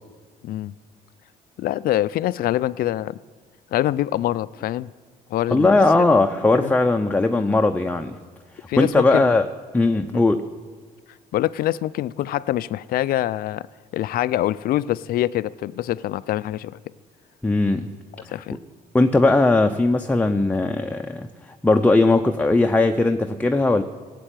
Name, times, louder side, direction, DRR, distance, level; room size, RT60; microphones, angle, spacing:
voice 1, 1.6-3.2 3.7-4.9 5.3-5.8 6.5-6.7 8.7-9.3 10.1-10.2 11.3-13.7 13.9-16.8 18.3-18.6, left 13 dB, 60° left, 18 dB, 0.4 m, -24 dB
voice 2, 5.5-8.2 8.8-9.5 9.7-10.5 17.4-18.0 18.9-21.3 21.6-23.8, left 2 dB, 10° left, 5 dB, 0.6 m, -18 dB
17.5 x 7.6 x 9.1 m, 1.5 s
cardioid pair, 110°, 17 cm